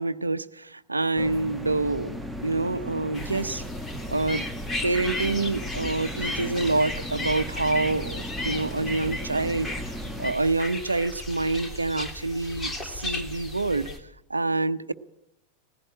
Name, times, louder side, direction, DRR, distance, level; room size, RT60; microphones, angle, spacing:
voice 1, 0.0-3.6 4.1-4.4 4.8-9.7 10.2-13.9 14.3-14.9, right 2 dB, 80° right, 13 dB, 0.8 m, -27 dB
sound 1, 1.2-10.3, equal, 5° right, 1.3 m, -37 dB
sound 2, 3.1-14.0, left 2 dB, 15° left, 3.1 m, -35 dB
19.5 x 15.5 x 8.8 m, 0.83 s
figure-of-eight pair, 90°, 0 cm